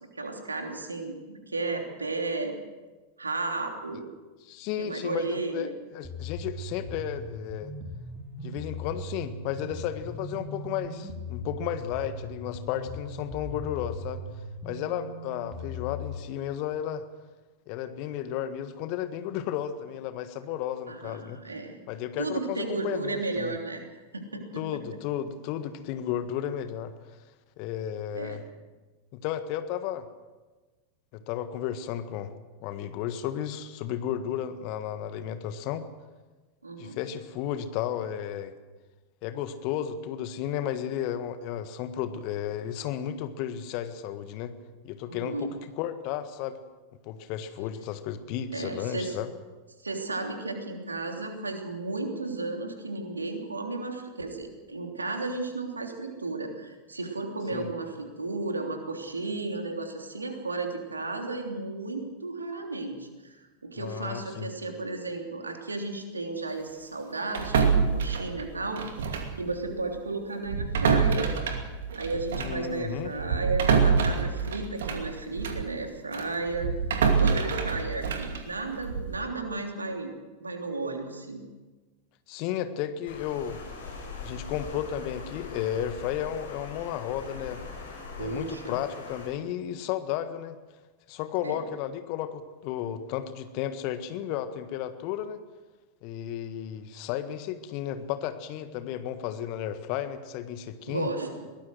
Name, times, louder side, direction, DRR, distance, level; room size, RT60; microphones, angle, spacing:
voice 1, 0.1-2.6 3.2-4.0 4.8-5.7 20.9-21.8 22.2-23.8 24.1-24.8 28.1-28.4 36.6-37.0 45.1-45.5 48.5-49.2 49.8-68.8 69.4-71.3 71.9-76.7 77.1-80.1 80.4-81.4 88.2-88.8 91.4-91.6 100.9-101.3, right 3 dB, 80° right, 3 dB, 3.2 m, -34 dB
voice 2, 4.4-7.7 8.4-14.2 14.6-17.0 17.7-21.4 21.9-23.5 24.5-26.9 27.6-28.4 29.1-30.0 31.1-32.3 32.6-35.8 36.8-38.5 39.2-44.5 44.8-46.6 47.0-49.3 57.5-57.7 63.8-64.5 72.4-73.1 82.3-83.6 84.2-87.6 88.2-90.6 91.1-95.4 96.0-101.1, left 10 dB, 45° left, 10 dB, 1.5 m, -33 dB
sound 1, 6.0-16.2, left 1 dB, 10° right, 3.3 m, -39 dB
sound 2, 67.3-69.4 69.7-69.9 70.4-75.7 76.1-79.2, right 5 dB, 60° right, 2.5 m, -26 dB
Water, 83.1-89.3, left 4 dB, 65° left, 5.9 m, -41 dB
22.5 x 18.5 x 6.4 m, 1.3 s
figure-of-eight pair, 90°, 0 cm